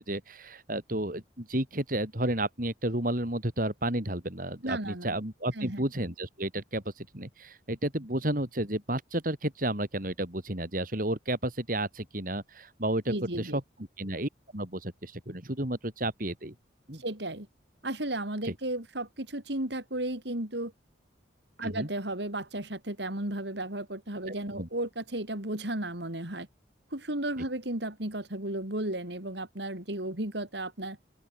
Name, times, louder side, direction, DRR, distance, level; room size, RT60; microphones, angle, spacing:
voice 1, 0.0-13.6 14.0-16.5 16.9-17.0 18.4-18.5 21.6-21.9 24.3-24.7, right 1 dB, 45° right, 4.1 m, -32 dB
voice 2, 4.6-5.1 5.5-5.8 13.1-13.6 17.0-17.5 17.8-20.7 21.6-26.5 26.9-31.0, right 1 dB, 65° right, 4.2 m, -34 dB
open air
head